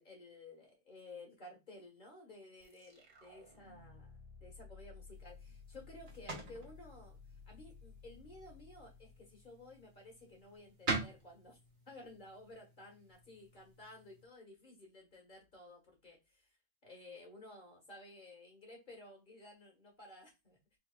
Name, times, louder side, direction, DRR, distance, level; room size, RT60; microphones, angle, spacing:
voice 1, 0.0-4.1 4.4-7.2 7.5-11.6 11.9-16.6 16.8-20.8, left 2 dB, 40° left, 1 dB, 1.8 m, -55 dB
sound 1, 2.6-9.9, left 5 dB, 60° right, 1.6 m, -56 dB
sound 2, 5.1-14.2, right 3 dB, 40° right, 1.5 m, -46 dB
4.5 x 4.1 x 2.4 m, 0.23 s
omnidirectional pair, 1.3 m